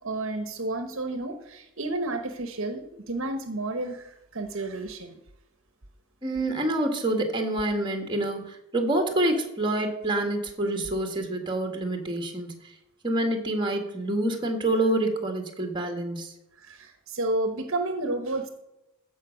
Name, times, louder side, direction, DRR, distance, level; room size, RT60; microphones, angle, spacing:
voice 1, 0.0-5.2 16.6-18.5, right 2 dB, 60° right, 7 dB, 1.1 m, -31 dB
voice 2, 6.2-12.6 13.0-16.3, right 1 dB, 20° right, 4 dB, 1.7 m, -27 dB
15.0 x 5.4 x 6.4 m, 0.88 s
head